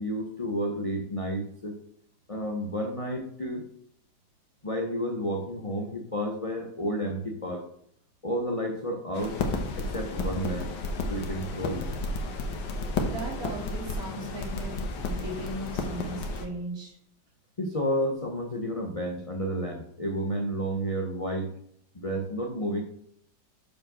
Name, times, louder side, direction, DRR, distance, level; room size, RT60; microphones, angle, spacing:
voice 1, 0.0-1.8 2.3-3.6 4.6-7.7 8.2-9.4 9.8-10.7 11.1-11.9 17.6-21.5 21.9-22.8, equal, 55° left, 2 dB, 0.4 m, -31 dB
sound 1, 9.1-16.5, left 2 dB, 70° left, 1.7 m, -32 dB
voice 2, 13.1-17.0, right 2 dB, 45° right, -2 dB, 2.7 m, -37 dB
7.4 x 4.6 x 6.1 m, 0.67 s
omnidirectional pair, 2.1 m